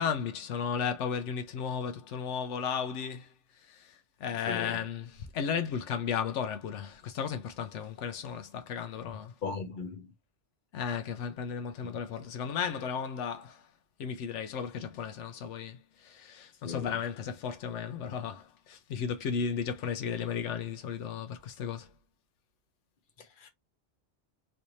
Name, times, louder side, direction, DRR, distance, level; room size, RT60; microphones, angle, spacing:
voice 1, 0.0-9.3 10.7-13.7 14.0-21.9, left 7 dB, 80° left, 0.9 m, -34 dB
voice 2, 4.5-4.8 9.4-10.1 16.6-17.0 23.2-23.5, left 5 dB, 50° left, 1.0 m, -38 dB
3.2 x 2.6 x 3.0 m
omnidirectional pair, 1.2 m